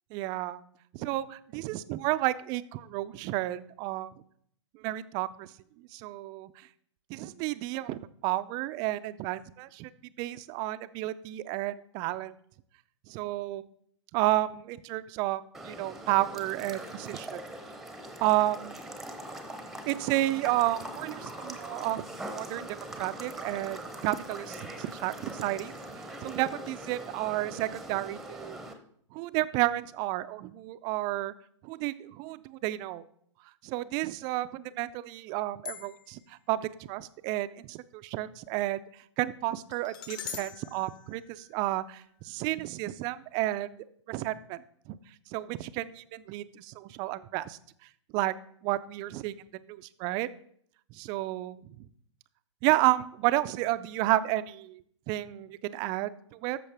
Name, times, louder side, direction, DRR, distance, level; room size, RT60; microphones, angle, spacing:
voice 1, 0.1-4.1 4.7-5.5 5.9-6.5 7.1-9.9 10.2-12.3 13.1-13.6 14.1-17.4 18.2-18.8 19.9-22.0 22.3-25.7 26.2-28.6 29.1-31.3 31.6-33.0 33.6-38.8 39.2-43.8 44.1-44.6 44.9-45.0 45.3-47.6 48.1-48.3 48.6-49.3 49.7-50.3 50.9-51.6 52.6-56.6, right 16 dB, 25° right, 14 dB, 0.4 m, -31 dB
sound 1, 15.5-28.7, right 1 dB, ahead, 0.7 m, -42 dB
sound 2, 35.6-36.3 39.7-42.0, left 9 dB, 45° left, 1.4 m, -43 dB
13.5 x 6.2 x 3.4 m, 0.65 s
hypercardioid pair, 125°, 16 cm